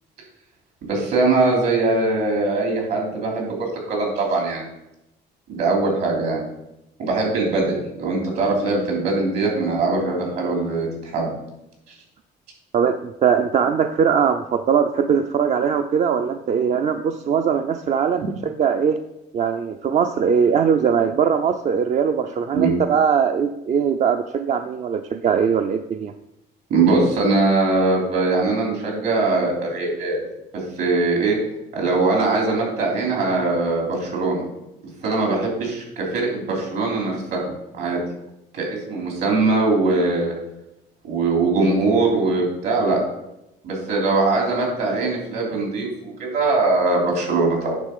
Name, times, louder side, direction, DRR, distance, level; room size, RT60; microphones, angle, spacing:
voice 1, 0.8-4.7 5.5-6.5 7.0-11.3 22.5-22.7 26.7-30.2 30.8-31.4 31.7-34.4 35.0-38.0 38.5-40.3 41.0-43.0 43.6-47.8, right 3 dB, 70° right, -1 dB, 3.4 m, -21 dB
voice 2, 12.7-19.0 19.3-26.1, right 7 dB, 45° right, 7 dB, 0.5 m, -20 dB
9.5 x 3.7 x 6.8 m, 0.90 s
cardioid pair, 110°, 17 cm